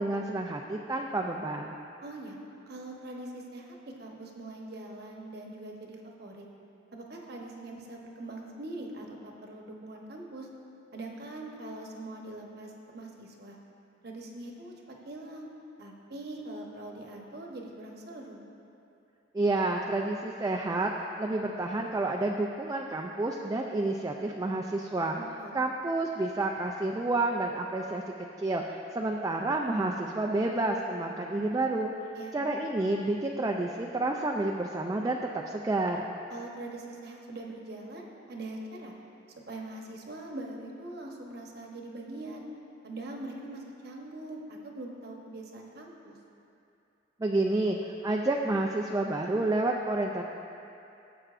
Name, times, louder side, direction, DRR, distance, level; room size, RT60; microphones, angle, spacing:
voice 1, 0.0-1.8 19.3-20.9 21.2-25.2 25.5-31.9 32.3-36.1 47.2-50.2, right 2 dB, 20° right, 0 dB, 0.3 m, -29 dB
voice 2, 2.0-2.4 2.7-6.4 6.9-10.5 10.9-13.6 14.0-15.5 15.8-18.4 25.1-25.6 32.2-32.4 36.3-38.9 39.5-42.4 42.8-46.2, right 2 dB, 55° right, 0 dB, 1.0 m, -42 dB
14.0 x 7.7 x 2.5 m, 2.7 s
head